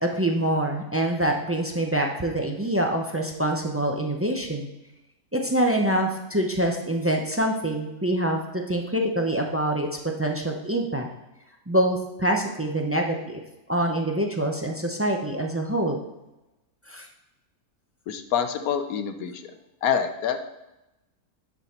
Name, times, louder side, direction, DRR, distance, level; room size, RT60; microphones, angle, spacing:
voice 1, 0.0-4.7 5.3-9.9 10.2-11.1 11.7-13.4 13.7-16.0 16.9-17.1, right 1 dB, 20° right, 2 dB, 0.3 m, -25 dB
voice 2, 18.1-19.4 19.8-20.4, left 8 dB, 75° left, 8 dB, 1.1 m, -26 dB
10.5 x 5.0 x 4.3 m, 0.96 s
omnidirectional pair, 1.5 m